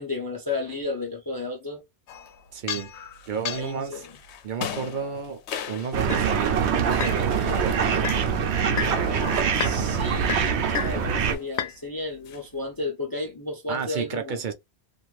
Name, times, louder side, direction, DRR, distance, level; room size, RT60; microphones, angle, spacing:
voice 1, 0.0-1.8 3.5-4.1 9.5-14.4, left 3 dB, 30° left, 0.4 m, -33 dB
sound 1, 2.1-6.4 6.8-8.3 8.7-11.8 12.1-12.4, left 9 dB, 90° left, 0.9 m, -34 dB
voice 2, 2.5-2.9 3.3-4.0 4.4-5.4 5.7-8.1 10.8-11.3 13.7-14.5, right 6 dB, 55° right, 0.6 m, -32 dB
sound 2, 5.9-11.3, right 6 dB, 80° right, 0.9 m, -24 dB
2.5 x 2.5 x 3.1 m
omnidirectional pair, 1.1 m